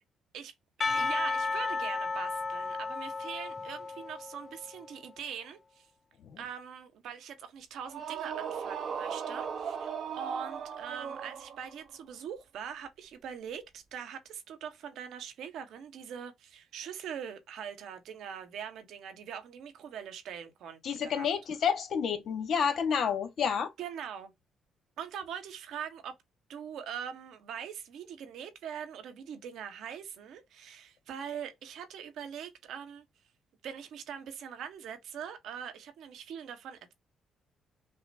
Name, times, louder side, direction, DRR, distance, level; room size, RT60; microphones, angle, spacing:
Percussion, 0.8-4.7, left 4 dB, 30° left, 0.4 m, -33 dB
voice 1, 0.8-5.9 6.4-21.3 23.8-24.3 25.0-26.1 26.5-33.1 33.6-36.9, right 8 dB, 80° right, 1.0 m, -42 dB
sound 1, 7.9-11.8, right 7 dB, 60° right, 0.8 m, -37 dB
voice 2, 20.8-23.7, left 7 dB, 65° left, 1.2 m, -29 dB
5.6 x 2.1 x 2.7 m
cardioid pair, 90°, 0 cm